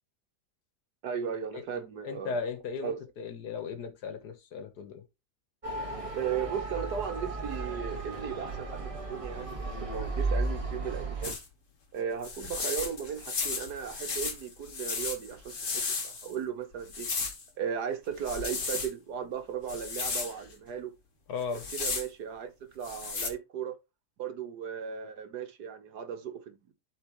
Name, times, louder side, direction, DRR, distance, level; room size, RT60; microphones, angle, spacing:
voice 1, 1.0-2.4 2.8-3.0 6.2-9.6 9.9-11.4 11.9-17.1 17.6-20.9 21.5-23.7 24.2-26.7, right 7 dB, 75° right, 1.6 m, -36 dB
voice 2, 2.0-5.0 21.3-21.6, left 5 dB, 75° left, 1.7 m, -36 dB
Motor vehicle (road) / Siren, 5.6-11.3, right 3 dB, 20° right, 1.6 m, -34 dB
sound 1, 11.2-11.4 12.2-16.3 16.9-17.4 18.2-18.9 19.7-20.3 21.4-22.1 22.8-23.3, left 4 dB, 50° left, 1.8 m, -34 dB
12.0 x 4.1 x 3.1 m
omnidirectional pair, 1.8 m